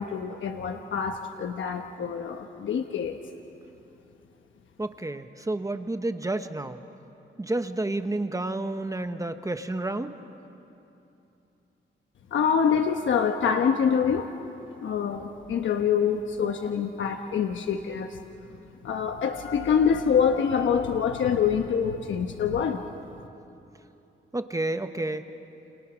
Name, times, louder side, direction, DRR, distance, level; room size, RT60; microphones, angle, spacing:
voice 1, 0.0-3.2 12.3-14.3 14.8-18.2 18.8-22.8, left 7 dB, 85° left, 5 dB, 1.1 m, -25 dB
voice 2, 4.8-6.8 7.4-10.1 24.3-25.2, right 2 dB, 15° right, 8 dB, 1.0 m, -30 dB
29.5 x 29.0 x 6.2 m, 2.8 s
wide cardioid pair, 115°, 19 cm